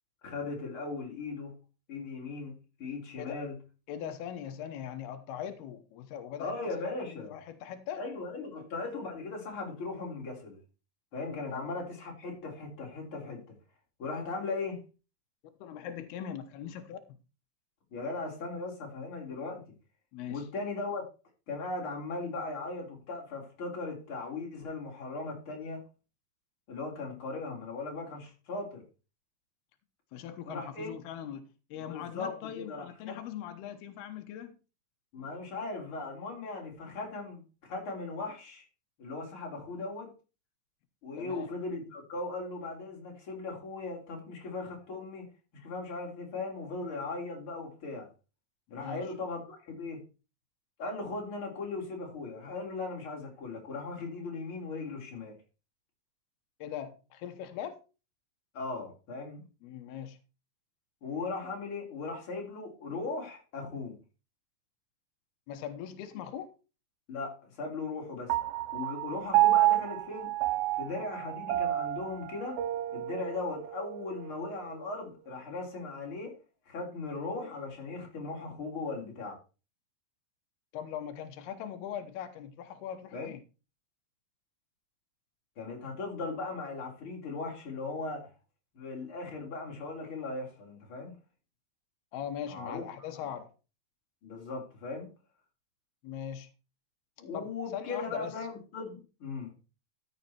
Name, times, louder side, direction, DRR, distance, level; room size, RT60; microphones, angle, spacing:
voice 1, 0.2-1.5 1.9-3.5 6.4-7.3 8.0-10.6 11.1-13.4 14.0-14.8 17.9-19.7 20.3-21.1 21.5-25.8 26.7-28.8 30.5-30.9 31.8-33.2 35.1-38.6 39.0-40.1 41.0-45.3 45.5-48.1 48.7-50.0 50.8-55.4 58.5-59.4 61.0-64.0 67.1-68.3 68.7-70.3 70.8-72.6 72.9-76.4 76.7-79.4 83.1-83.3 85.6-88.3 88.7-91.2 92.5-92.9 93.2-93.3 94.2-95.1 97.2-99.5, left 3 dB, 35° left, 4.0 m, -38 dB
voice 2, 3.9-6.5 6.8-8.0 11.5-11.7 15.6-17.0 20.1-20.4 30.1-34.6 41.2-41.5 48.7-49.1 56.6-57.8 59.6-60.2 65.5-66.5 80.7-83.4 92.1-93.5 96.0-96.5 97.3-98.3, left 9 dB, 90° left, 3.0 m, -40 dB
Piano, 68.3-75.0, right 15 dB, 80° right, 2.5 m, -30 dB
13.5 x 6.4 x 4.3 m
omnidirectional pair, 4.4 m